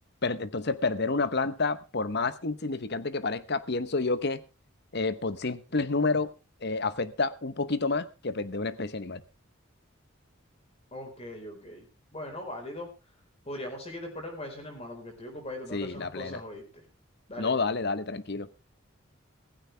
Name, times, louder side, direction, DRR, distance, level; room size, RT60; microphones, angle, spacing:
voice 1, 0.2-4.4 4.9-6.3 6.6-9.2 15.7-16.4 17.4-18.5, left 3 dB, 50° left, 15 dB, 1.0 m, -29 dB
voice 2, 10.9-11.8 12.1-12.9 13.5-16.8 17.3-17.5, left 1 dB, 30° left, 3 dB, 4.5 m, -40 dB
16.0 x 15.0 x 3.4 m, 0.30 s
head